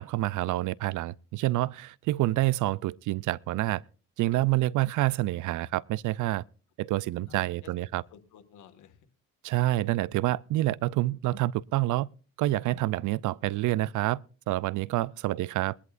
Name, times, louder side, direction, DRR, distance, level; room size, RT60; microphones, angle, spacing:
voice 1, 0.0-3.8 4.2-6.4 6.8-8.0 9.4-12.1 12.4-14.2 14.5-15.8, right 16 dB, 80° right, 0.5 m, -27 dB
voice 2, 7.3-7.7 8.1-9.1 14.8-15.0 15.3-15.4, left 8 dB, 80° left, 1.9 m, -55 dB
21.5 x 11.0 x 2.5 m
cardioid pair, 90°, 30 cm